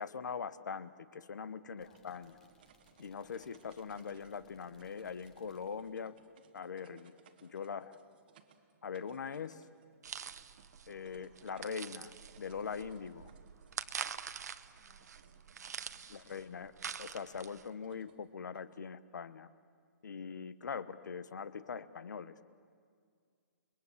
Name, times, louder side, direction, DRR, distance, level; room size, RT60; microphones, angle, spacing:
voice 1, 0.0-2.4 3.0-6.2 6.5-7.1 7.4-8.0 8.8-9.7 10.9-13.3 16.1-16.7 17.0-19.5 20.0-22.4, left 6 dB, 90° left, 15 dB, 1.2 m, -42 dB
sound 1, 1.8-6.0, left 2 dB, 5° left, 0.9 m, -69 dB
sound 2, 1.8-18.8, right 8 dB, 30° right, 1.3 m, -66 dB
sound 3, 10.0-17.7, right 7 dB, 65° right, 1.1 m, -45 dB
voice 2, 14.8-16.6, left 8 dB, 30° left, 5 dB, 1.2 m, -71 dB
30.0 x 21.5 x 8.3 m, 2.1 s
hypercardioid pair, 180°, 9 cm